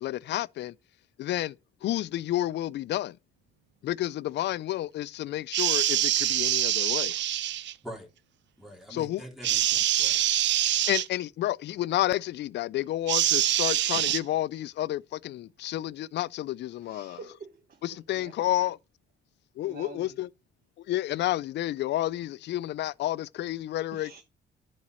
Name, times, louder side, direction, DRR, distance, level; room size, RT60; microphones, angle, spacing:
voice 1, 0.0-0.7 1.2-1.6 1.8-3.2 3.8-7.1 8.9-9.2 10.9-17.2 17.8-18.8 19.6-20.3 20.9-24.1, left 14 dB, 60° left, 0.4 m, -30 dB
sound 1, 5.5-7.7 9.4-11.1 13.1-14.2, right 12 dB, 65° right, 0.6 m, -25 dB
voice 2, 8.6-10.2, equal, ahead, 3.3 m, -44 dB
voice 3, 16.8-18.3 19.6-20.2 23.9-24.2, right 5 dB, 45° right, 1.3 m, -47 dB
10.5 x 4.3 x 6.2 m
cardioid pair, 90°, 20 cm